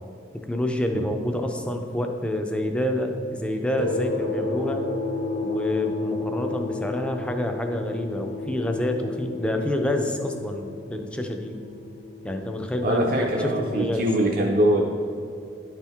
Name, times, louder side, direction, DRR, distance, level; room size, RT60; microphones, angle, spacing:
voice 1, 0.3-4.9 5.4-11.6 12.2-14.1, left 1 dB, 5° left, 4 dB, 0.4 m, -28 dB
sound 1, 3.8-12.5, left 3 dB, 85° left, 1.0 m, -32 dB
voice 2, 12.8-14.8, right 1 dB, 50° right, -1 dB, 0.5 m, -22 dB
10.5 x 4.5 x 3.5 m, 2.6 s
head